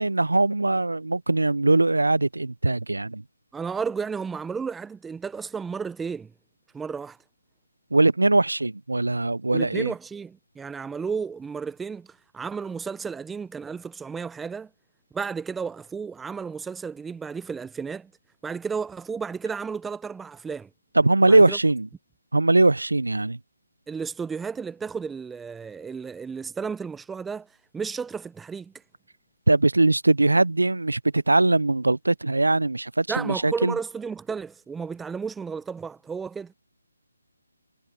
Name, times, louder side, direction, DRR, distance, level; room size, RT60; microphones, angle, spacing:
voice 1, 0.0-3.2 7.9-9.9 21.0-21.9 22.3-23.4 29.5-33.7, right 2 dB, 90° right, 0.3 m, -21 dB
voice 2, 3.5-6.3 6.7-7.2 9.5-14.7 15.1-18.1 18.4-20.7 21.3-21.6 23.9-27.5 27.7-28.7 33.1-36.5, right 5 dB, 5° right, 0.5 m, -33 dB
figure-of-eight pair, 155°, 0 cm